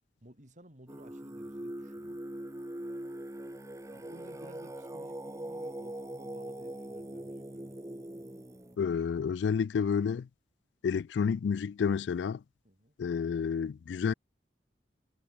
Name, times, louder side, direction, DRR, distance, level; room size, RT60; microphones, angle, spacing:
voice 1, 0.2-2.2 3.9-7.8 12.6-12.9, right 1 dB, 45° right, 6.8 m, -56 dB
Singing, 0.9-8.8, right 1 dB, 20° right, 1.4 m, -42 dB
voice 2, 8.8-10.3 10.8-12.4 13.0-14.1, left 6 dB, 80° left, 0.3 m, -30 dB
head